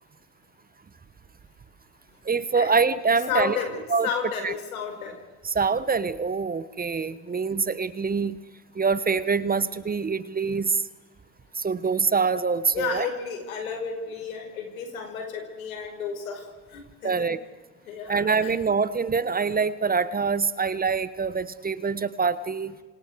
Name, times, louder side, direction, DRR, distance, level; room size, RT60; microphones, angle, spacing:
voice 1, 2.2-3.6 3.9-4.1 4.4-4.5 5.4-8.4 8.7-10.8 11.6-13.1 17.0-17.4 18.1-22.7, right 5 dB, 20° right, 16 dB, 1.2 m, -25 dB
voice 2, 3.3-3.8 4.0-5.1 12.7-16.4 16.7-17.1 17.9-18.5, left 6 dB, 80° left, 4 dB, 5.3 m, -32 dB
29.0 x 26.5 x 4.8 m, 1.3 s
hypercardioid pair, 70°, 41 cm